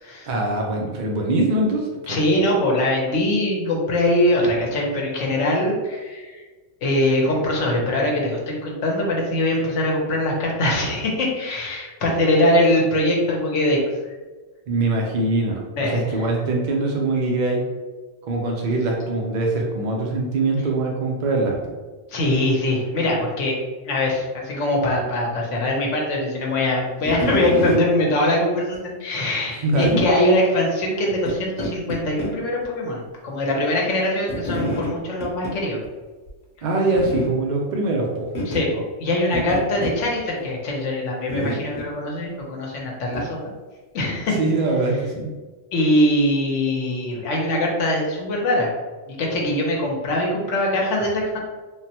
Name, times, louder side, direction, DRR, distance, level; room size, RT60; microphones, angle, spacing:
voice 1, 0.3-2.2 14.7-17.6 18.3-21.7 29.6-30.0 36.6-38.3 44.4-45.3, right 2 dB, 60° right, -1 dB, 0.4 m, -22 dB
voice 2, 2.1-6.4 6.8-13.8 15.8-16.0 22.1-23.6 23.8-35.8 38.5-43.4 43.9-44.4 45.7-48.7 49.1-51.4, left 1 dB, 85° left, -1 dB, 1.1 m, -22 dB
sound 1, 27.0-27.8 28.7-28.8 29.8-30.1 31.2-31.3 31.6-32.3 32.6-32.7 34.3-34.9 35.2-35.5 35.8-35.9 36.3-36.4 36.9-37.3 38.3-38.6 39.3-40.0 41.3-41.9 43.1-43.3, equal, 50° left, 1.0 m, -27 dB
3.5 x 2.1 x 2.8 m, 1.3 s
omnidirectional pair, 1.2 m